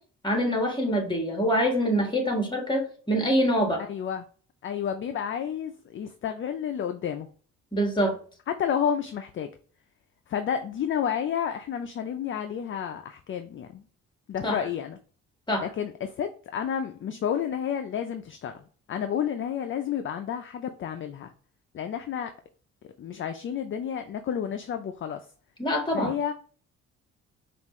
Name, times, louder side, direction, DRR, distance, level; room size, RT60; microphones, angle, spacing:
voice 1, 0.2-3.8 7.7-8.2 14.4-14.6 15.5-15.7 25.6-26.1, equal, 15° left, 3 dB, 1.7 m, -25 dB
voice 2, 3.8-4.3 4.6-7.3 8.5-9.5 10.3-13.8 14.3-15.0 15.6-18.6 18.9-21.3 21.7-22.3 23.0-25.2 25.9-26.3, left 8 dB, 40° left, 7 dB, 0.5 m, -30 dB
5.3 x 2.5 x 3.1 m, 0.43 s
cardioid pair, 85°, 30 cm